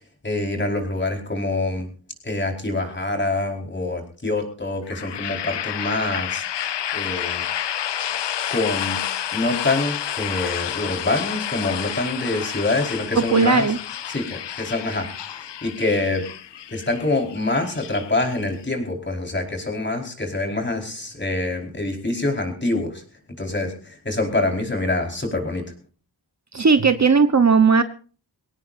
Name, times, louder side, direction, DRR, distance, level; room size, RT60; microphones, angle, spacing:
voice 1, 0.2-1.9 2.2-6.5 6.9-7.4 8.5-9.0 9.3-13.7 14.1-16.3 16.7-23.0 23.4-25.7, left 2 dB, 25° left, 2 dB, 4.8 m, -25 dB
sound 1, 4.9-18.7, left 10 dB, 70° left, 0.7 m, -30 dB
voice 2, 13.1-13.8 26.5-27.8, right 5 dB, 40° right, 10 dB, 1.0 m, -16 dB
24.0 x 18.0 x 2.7 m, 0.39 s
wide cardioid pair, 115°, 43 cm